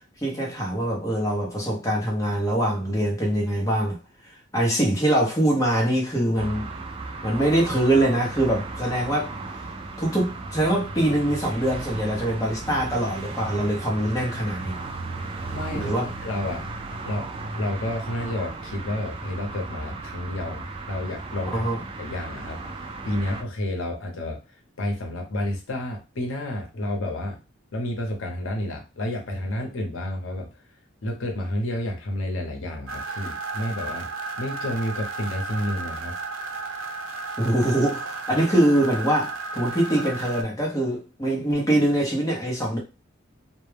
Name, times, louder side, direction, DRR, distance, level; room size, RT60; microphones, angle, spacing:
voice 1, 0.2-4.0 4.5-6.7 7.2-9.3 10.0-14.8 15.7-16.1 21.5-21.8 37.4-42.8, right 1 dB, 15° left, 0.7 m, -23 dB
sound 1, 6.4-23.4, right 3 dB, 25° right, 0.3 m, -36 dB
voice 2, 15.5-16.0 16.2-16.7 17.0-17.3 17.6-21.7 22.0-22.6 23.0-24.4 24.8-27.4 27.7-30.6 31.0-34.1 34.4-36.2, left 1 dB, 90° left, 0.7 m, -30 dB
sound 2, 32.9-40.4, right 3 dB, 85° right, 0.5 m, -33 dB
2.2 x 2.1 x 3.2 m
head